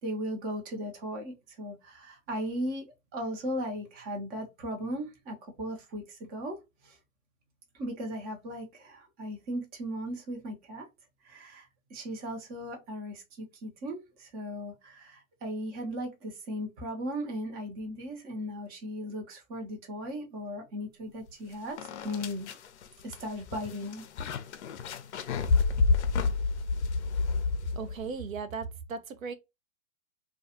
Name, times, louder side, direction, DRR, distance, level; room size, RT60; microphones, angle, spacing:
voice 1, 0.0-2.8 3.1-6.6 6.8-7.0 7.7-10.9 11.2-22.5 23.0-24.0, equal, 20° right, 0.8 m, -37 dB
sound 1, 21.3-21.4 21.8-28.1, left 4 dB, 55° left, 0.5 m, -29 dB
voice 2, 27.8-29.3, right 5 dB, 80° right, 0.6 m, -37 dB
2.3 x 2.3 x 2.7 m
hypercardioid pair, 120°, 40 cm